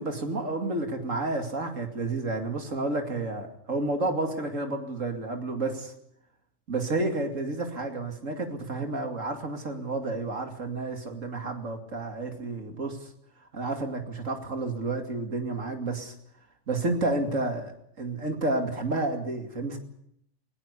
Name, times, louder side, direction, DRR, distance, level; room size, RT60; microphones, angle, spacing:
voice 1, 0.0-5.9 6.7-13.0 13.5-16.1 16.7-17.7 18.0-19.8, right 2 dB, 75° right, 5 dB, 2.9 m, -30 dB
19.5 x 18.0 x 8.3 m, 0.71 s
omnidirectional pair, 1.4 m